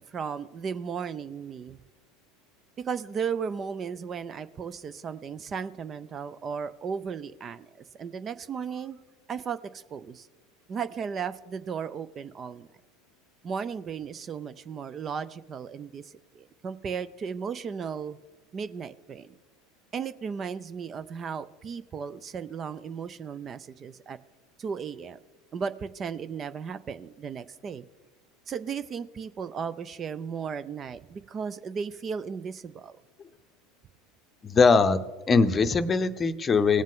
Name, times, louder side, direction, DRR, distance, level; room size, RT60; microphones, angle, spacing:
voice 1, 0.0-1.8 2.8-9.0 9.3-10.3 10.7-12.7 13.4-18.2 18.5-19.3 19.9-24.2 24.6-25.2 25.5-27.9 28.5-33.0, right 6 dB, 35° right, 14 dB, 0.4 m, -35 dB
voice 2, 34.4-36.8, left 4 dB, 25° left, 11 dB, 0.7 m, -21 dB
18.5 x 7.3 x 3.7 m, 1.2 s
hypercardioid pair, 80°, 0 cm